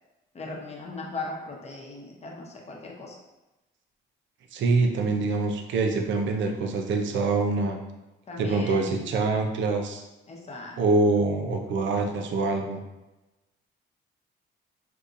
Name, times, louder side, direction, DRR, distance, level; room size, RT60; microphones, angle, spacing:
voice 1, 0.3-3.2 8.3-9.0 10.3-10.8, left 3 dB, 35° left, -1 dB, 0.9 m, -38 dB
voice 2, 4.5-7.8 8.4-10.0 10.8-12.8, right 3 dB, 70° right, 3 dB, 0.6 m, -25 dB
3.6 x 2.8 x 2.5 m, 1.0 s
cardioid pair, 90°, 20 cm